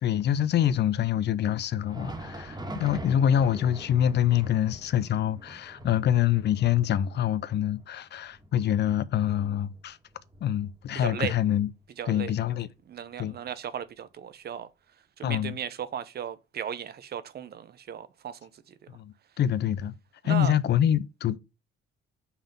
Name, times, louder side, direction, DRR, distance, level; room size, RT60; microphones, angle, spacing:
voice 1, 0.0-10.0 10.4-11.7 12.1-12.7 13.2-13.4 15.2-15.6 18.9-19.9 20.2-21.4, left 10 dB, 60° left, 0.5 m, -25 dB
Thunder, 1.7-11.2 11.5-11.7 12.4-12.5 13.5-13.6, right 1 dB, 20° right, 1.7 m, -44 dB
voice 2, 10.9-11.3 12.0-12.3 12.9-14.7 15.2-18.8 20.2-20.5, right 9 dB, 55° right, 0.7 m, -36 dB
5.7 x 3.5 x 5.6 m
cardioid pair, 90°, 20 cm